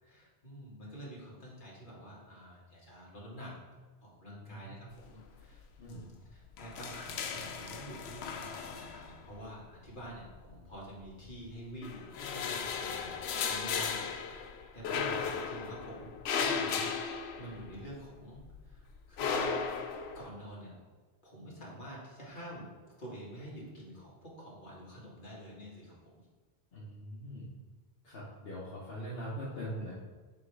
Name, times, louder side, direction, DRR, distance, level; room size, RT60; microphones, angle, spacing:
voice 1, 0.0-3.5 4.0-4.8 5.1-13.1 13.5-19.7 20.1-20.8 21.2-22.7 23.0-26.0, equal, 55° left, -6 dB, 2.0 m, -48 dB
voice 2, 4.3-4.8 5.8-6.1 14.9-15.2 26.7-27.5 28.0-29.9, equal, 70° left, -6 dB, 1.3 m, -42 dB
sound 1, 5.0-5.5 5.8-6.0 6.3-9.4 10.3-11.3 11.7-18.0 18.4-20.3, left 6 dB, 85° left, 0.9 m, -36 dB
7.6 x 3.3 x 4.7 m, 1.4 s
omnidirectional pair, 1.0 m